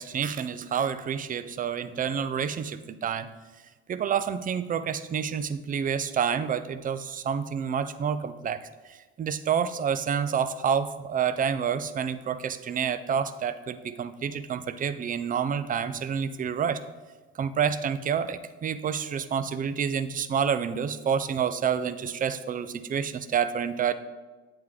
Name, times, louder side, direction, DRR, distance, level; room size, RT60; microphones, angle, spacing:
voice 1, 0.0-3.3 3.9-8.7 9.2-16.8 17.4-23.9, right 7 dB, 25° right, 12 dB, 0.4 m, -28 dB
8.0 x 3.6 x 4.9 m, 1.3 s
supercardioid pair, 90°, 35 cm